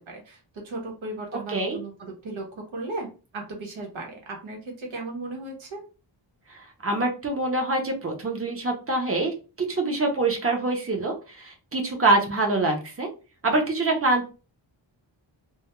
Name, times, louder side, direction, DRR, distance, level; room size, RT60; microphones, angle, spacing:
voice 1, 0.1-3.1 3.3-5.8, right 2 dB, 90° right, 1 dB, 0.9 m, -36 dB
voice 2, 1.3-1.8 6.5-13.1 13.4-14.3, right 2 dB, 30° right, 2 dB, 0.6 m, -25 dB
2.2 x 2.1 x 2.9 m, 0.33 s
wide cardioid pair, 165°, 46 cm